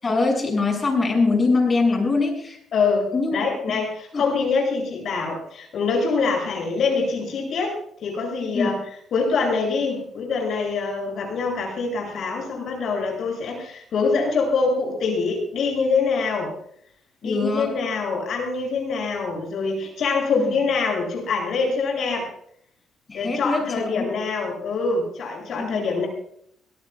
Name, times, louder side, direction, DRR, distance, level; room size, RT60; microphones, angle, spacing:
voice 1, 0.0-2.6 3.1-3.8 4.1-4.2 8.5-8.7 17.2-17.7 20.4-20.5 23.1-23.6 24.0-24.1 25.6-25.8, left 3 dB, 35° left, 2 dB, 7.1 m, -23 dB
voice 2, 2.7-8.8 9.1-16.5 17.2-22.3 23.1-26.1, left 4 dB, 65° left, 0 dB, 7.9 m, -24 dB
24.5 x 17.5 x 2.4 m, 0.66 s
cardioid pair, 90°, 0 cm